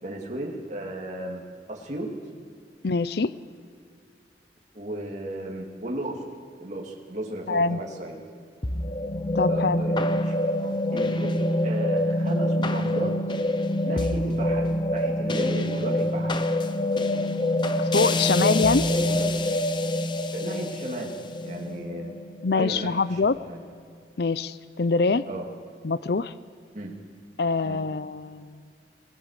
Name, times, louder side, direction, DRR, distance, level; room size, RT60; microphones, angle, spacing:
voice 1, 0.0-1.4 1.7-2.1 4.7-6.3 6.6-8.2 9.5-10.4 10.9-13.2 13.8-16.4 17.8-19.4 20.3-21.2 21.4-22.1 22.5-23.6 25.3-25.5 26.7-26.9 27.6-27.8, right 1 dB, 40° right, -1 dB, 2.5 m, -35 dB
voice 2, 2.8-3.3 7.5-7.8 9.3-9.8 17.8-18.8 22.4-23.4 24.2-25.2 25.8-26.3 27.4-28.6, left 4 dB, 65° left, 15 dB, 0.6 m, -24 dB
sound 1, 8.6-23.1, left 1 dB, 25° left, 0.8 m, -26 dB
22.5 x 20.0 x 6.6 m, 2.2 s
head